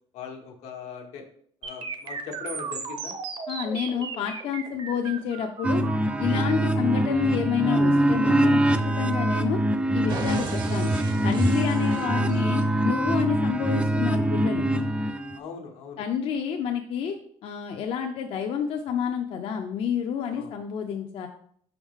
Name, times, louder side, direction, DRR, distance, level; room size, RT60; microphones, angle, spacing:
voice 1, 0.1-1.2 1.6-3.1 15.3-16.0 20.3-20.5, left 6 dB, 90° left, 2 dB, 1.2 m, -40 dB
sound 1, 1.6-9.6 10.1-12.6, right 5 dB, 45° right, 0.7 m, -37 dB
voice 2, 3.5-5.8 6.2-9.6 9.9-10.9 11.2-14.6 16.0-17.2 17.4-21.3, left 7 dB, 55° left, 4 dB, 0.5 m, -29 dB
sound 2, 5.6-15.4, right 1 dB, 10° right, 0.3 m, -24 dB
5.3 x 4.9 x 3.6 m, 0.62 s
cardioid pair, 160°, 11 cm